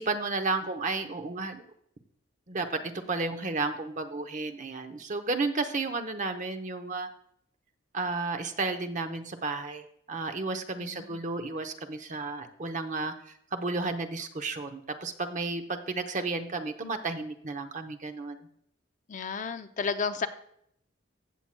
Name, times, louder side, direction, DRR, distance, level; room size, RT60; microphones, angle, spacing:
voice 1, 0.0-1.6 2.5-7.1 7.9-18.4, right 3 dB, 40° right, 8 dB, 0.8 m, -32 dB
voice 2, 10.8-11.2 19.1-20.3, left 5 dB, 40° left, 9 dB, 0.5 m, -32 dB
15.5 x 7.4 x 2.2 m, 0.73 s
head